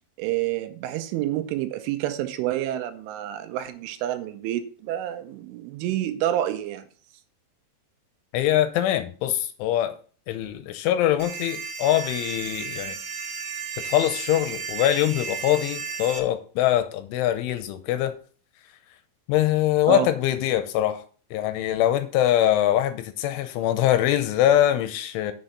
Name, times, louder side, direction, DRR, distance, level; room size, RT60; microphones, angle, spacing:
voice 1, 0.2-6.9 19.9-20.1, right 13 dB, 85° right, 3.1 m, -28 dB
voice 2, 8.3-10.0 10.3-13.0 13.8-18.1 19.3-21.0 21.3-25.3, left 12 dB, 85° left, 3.0 m, -23 dB
sound 1, 11.2-16.2, right 5 dB, 55° right, 1.9 m, -34 dB
8.0 x 6.5 x 5.6 m
omnidirectional pair, 5.8 m